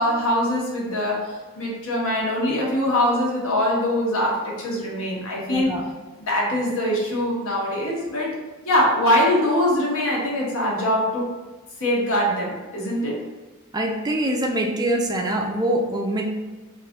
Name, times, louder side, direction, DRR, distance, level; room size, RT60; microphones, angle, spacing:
voice 1, 0.0-5.7 6.3-8.4 8.6-11.3 11.8-13.2, left 1 dB, 65° left, -3 dB, 1.1 m, -23 dB
voice 2, 5.4-5.9 13.7-16.3, right 1 dB, 20° right, 2 dB, 0.3 m, -24 dB
3.3 x 2.5 x 3.4 m, 1.3 s
head